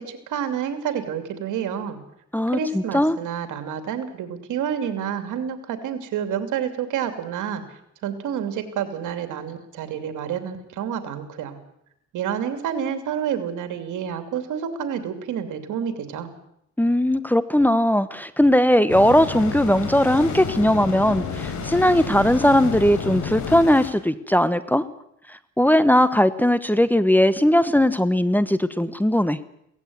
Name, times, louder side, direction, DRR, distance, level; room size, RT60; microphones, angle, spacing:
voice 1, 0.0-2.0 2.5-7.6 8.0-11.6 12.1-16.3, right 8 dB, 85° right, 8 dB, 2.9 m, -29 dB
voice 2, 2.3-3.2 16.8-24.8 25.6-29.4, left 1 dB, 5° left, 14 dB, 1.0 m, -19 dB
sound 1, 18.9-23.9, left 5 dB, 75° left, 4.4 m, -30 dB
17.5 x 15.5 x 9.6 m, 0.76 s
cardioid pair, 90°, 30 cm